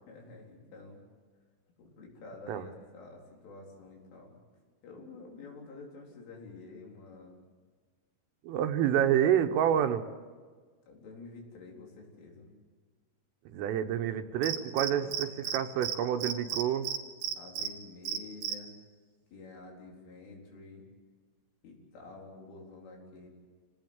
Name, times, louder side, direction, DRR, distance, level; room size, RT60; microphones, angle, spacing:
voice 1, 0.1-1.0 1.8-4.4 4.8-7.4 10.9-12.5 14.8-15.2 16.0-16.2 17.4-18.7 19.3-20.8 21.6-23.3, left 3 dB, 75° left, -1 dB, 6.5 m, -49 dB
voice 2, 8.4-10.0 13.5-16.9, right 10 dB, 85° right, 8 dB, 3.7 m, -28 dB
Cricket, 14.4-15.6 15.8-16.0 16.2-17.7 18.1-18.5, right 10 dB, 70° right, 3.3 m, -33 dB
27.5 x 18.0 x 8.0 m, 1.5 s
omnidirectional pair, 5.7 m